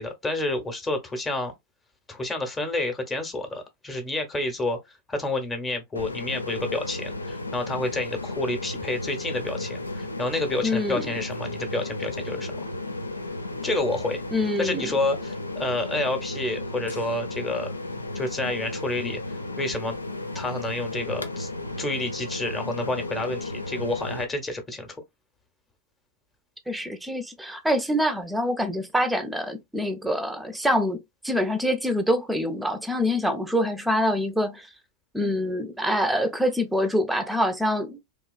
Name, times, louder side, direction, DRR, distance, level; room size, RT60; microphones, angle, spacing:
voice 1, 0.0-1.5 2.1-4.8 5.1-12.6 13.6-14.2 14.6-17.7 18.1-19.2 19.6-20.0 20.3-21.5 21.8-25.0, left 2 dB, 15° left, 0.9 m, -29 dB
sound 1, 5.9-24.2, left 2 dB, 85° left, 0.4 m, -34 dB
voice 2, 10.6-11.0 14.3-14.9 26.7-34.7 35.1-38.0, equal, 5° right, 0.5 m, -25 dB
3.0 x 2.3 x 2.4 m
figure-of-eight pair, 95°, 0 cm